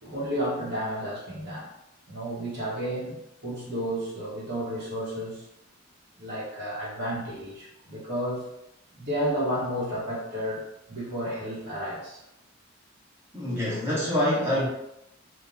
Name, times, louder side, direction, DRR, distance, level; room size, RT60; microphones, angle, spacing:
voice 1, 0.0-1.7 2.1-5.4 6.2-8.5 8.9-12.2, equal, 55° right, -7 dB, 0.9 m, -32 dB
voice 2, 13.3-14.7, equal, 15° right, -9 dB, 0.9 m, -25 dB
3.1 x 2.1 x 2.5 m, 0.85 s
head